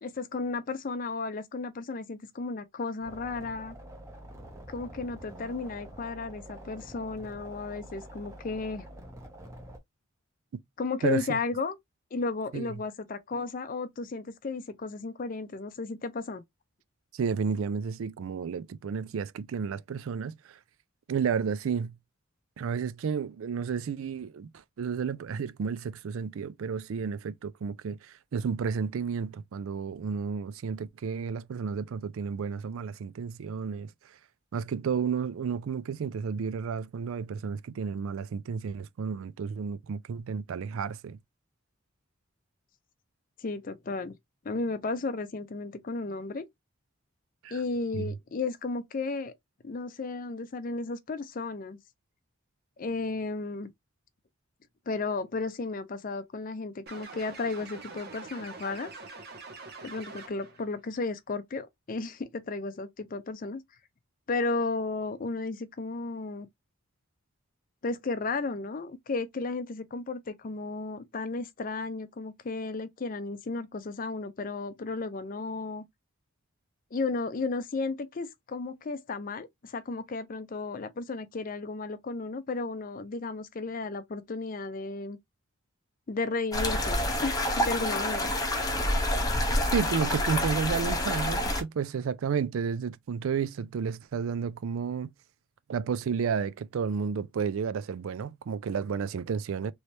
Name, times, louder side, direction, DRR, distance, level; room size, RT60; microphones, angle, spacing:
voice 1, 0.0-3.8 4.7-8.8 10.8-11.8 12.1-16.4 43.4-44.2 44.4-46.5 47.5-49.3 49.6-51.8 52.8-53.7 54.9-58.9 59.8-63.6 64.3-66.5 67.8-75.8 76.9-85.2 86.1-88.3, left 3 dB, 40° left, 0.4 m, -34 dB
sound 1, 3.0-9.8, right 1 dB, 15° right, 0.9 m, -46 dB
voice 2, 11.0-11.4 12.5-12.7 17.1-20.6 21.1-22.0 22.6-24.5 24.8-33.9 34.5-41.2 47.4-47.6 47.9-48.1 89.7-95.1 95.7-99.7, right 6 dB, 75° right, 0.4 m, -32 dB
sound 2, 56.9-60.6, right 3 dB, 50° right, 1.0 m, -45 dB
sound 3, 86.5-91.6, left 1 dB, 20° left, 0.8 m, -28 dB
3.2 x 3.1 x 2.7 m
head